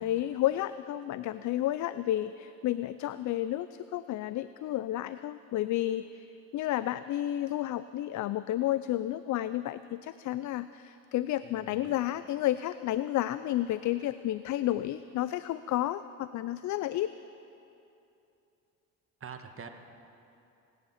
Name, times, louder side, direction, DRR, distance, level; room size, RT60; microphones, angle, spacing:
voice 1, 0.0-17.1, left 13 dB, 55° left, 14 dB, 0.5 m, -31 dB
voice 2, 11.4-12.0 19.2-19.7, right 6 dB, 40° right, 5 dB, 1.6 m, -46 dB
24.0 x 10.0 x 5.7 m, 2.7 s
supercardioid pair, 85°, 34 cm